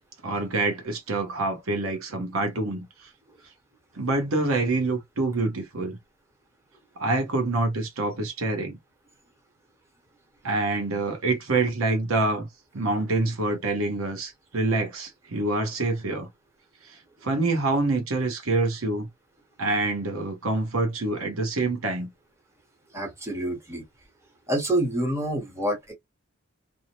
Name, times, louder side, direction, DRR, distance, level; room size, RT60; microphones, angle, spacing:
voice 1, 0.2-3.1 3.9-6.0 7.0-8.8 10.4-12.5 12.7-16.3 16.8-19.1 19.6-22.1, right 2 dB, 85° right, 0.9 m, -26 dB
voice 2, 22.9-23.8 24.5-25.9, right 1 dB, 15° right, 1.1 m, -27 dB
2.7 x 2.1 x 2.9 m
head